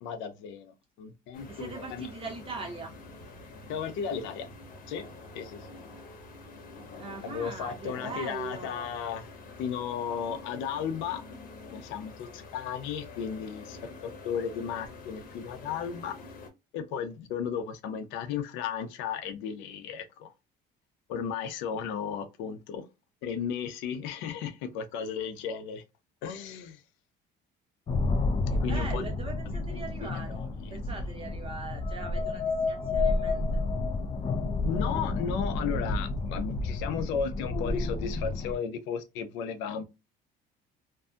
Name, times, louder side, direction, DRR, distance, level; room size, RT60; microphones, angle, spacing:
voice 1, 0.0-2.1 3.7-4.5 4.9-5.0 5.3-5.7 7.2-9.3 9.6-11.2 11.7-16.2 16.7-20.3 21.1-22.8 23.2-25.8 26.2-26.8 28.6-29.0 29.7-30.8 34.6-39.8, left 7 dB, 90° left, 0.6 m, -35 dB
sound 1, 1.3-16.5, left 3 dB, 50° left, 0.9 m, -47 dB
voice 2, 1.5-2.9 7.0-8.9 28.5-30.4 30.7-33.6, right 3 dB, 30° right, 0.7 m, -41 dB
sound 2, 27.9-38.5, left 3 dB, 30° left, 0.4 m, -30 dB
2.6 x 2.3 x 2.4 m
cardioid pair, 130°, 19 cm